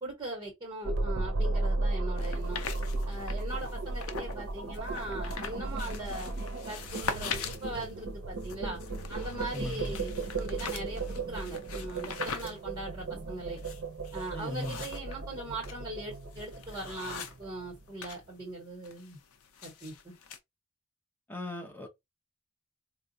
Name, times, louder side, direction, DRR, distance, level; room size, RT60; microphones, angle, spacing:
voice 1, 0.0-2.6 3.0-6.3 6.7-8.8 9.1-13.6 14.1-19.2 19.6-20.2, right 2 dB, 15° right, 1.1 m, -40 dB
sound 1, 0.8-18.1, right 2 dB, 55° right, 0.6 m, -35 dB
sound 2, 2.2-4.4 4.7-18.2 18.5-20.4, left 6 dB, 75° left, 0.5 m, -42 dB
voice 2, 9.5-10.0 14.3-14.9 21.3-21.9, left 1 dB, 10° left, 0.6 m, -38 dB
3.9 x 2.3 x 2.6 m
head